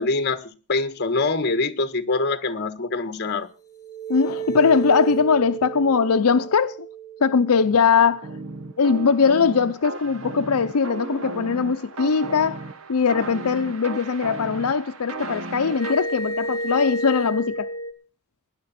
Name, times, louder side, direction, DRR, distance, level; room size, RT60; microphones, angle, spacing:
voice 1, 0.0-3.5, left 3 dB, 50° left, 1.5 m, -24 dB
sound 1, 3.6-8.9 15.6-17.9, right 3 dB, 15° left, 2.4 m, -32 dB
voice 2, 4.1-6.9 7.2-8.3 8.8-12.6 12.9-17.7, left 5 dB, 90° left, 0.6 m, -20 dB
sound 2, 8.2-15.9, right 3 dB, 65° right, 1.2 m, -35 dB
19.5 x 10.5 x 4.2 m
head